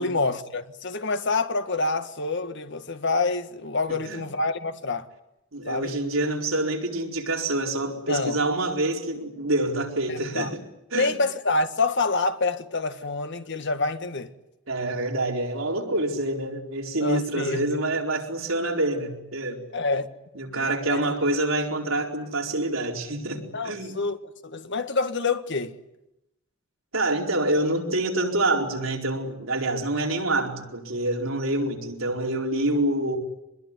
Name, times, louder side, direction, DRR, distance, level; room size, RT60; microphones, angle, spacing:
voice 1, 0.0-5.1 5.7-5.9 8.1-8.4 10.1-10.5 10.9-14.3 17.0-17.6 19.7-20.1 20.5-21.0 23.5-25.8, left 3 dB, 60° left, 1.7 m, -27 dB
voice 2, 5.5-10.6 10.9-11.1 14.7-19.6 20.3-24.0 26.9-33.2, right 2 dB, 70° right, 4.7 m, -26 dB
24.5 x 21.5 x 9.8 m
head